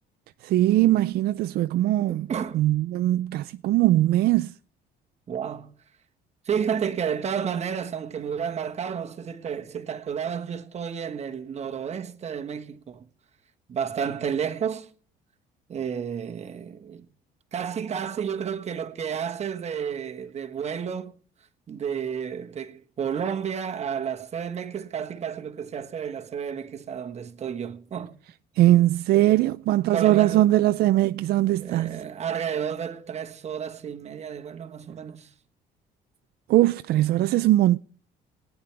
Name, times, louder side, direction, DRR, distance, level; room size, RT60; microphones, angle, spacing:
voice 1, 0.4-2.3 2.5-4.5 28.6-32.0 36.5-37.8, right 15 dB, 65° right, 0.5 m, -21 dB
voice 2, 2.1-2.7 5.3-5.7 6.4-13.1 13.7-14.9 15.7-17.1 17.5-21.1 21.7-28.2 29.8-30.5 31.6-35.3, right 7 dB, 40° right, 1.3 m, -31 dB
19.0 x 10.0 x 3.4 m
cardioid pair, 110°, 17 cm